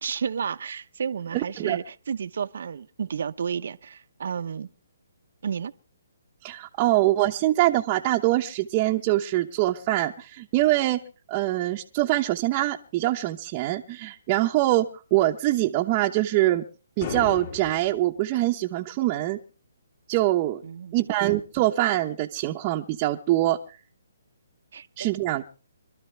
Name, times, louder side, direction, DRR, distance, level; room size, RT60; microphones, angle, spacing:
voice 1, 0.0-4.7 5.4-5.7 20.6-21.1 24.7-25.1, right 7 dB, 65° right, 0.9 m, -32 dB
voice 2, 1.3-1.8 6.4-11.0 11.3-16.6 17.0-19.4 20.1-20.6 20.9-23.6 25.0-25.4, right 16 dB, 25° right, 1.0 m, -24 dB
sound 1, 17.0-18.0, left 7 dB, 45° left, 3.0 m, -34 dB
26.5 x 12.5 x 3.4 m
hypercardioid pair, 160°, 0 cm